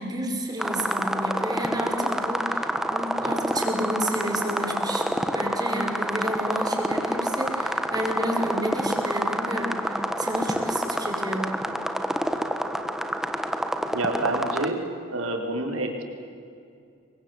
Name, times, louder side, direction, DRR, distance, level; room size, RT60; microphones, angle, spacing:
voice 1, 0.0-11.5, equal, 20° right, 2 dB, 4.9 m, -31 dB
sound 1, 0.6-14.7, equal, ahead, 1.4 m, -28 dB
voice 2, 13.9-14.8 15.1-16.0, right 2 dB, 85° right, 3 dB, 4.6 m, -27 dB
29.0 x 23.5 x 8.2 m, 2.4 s
head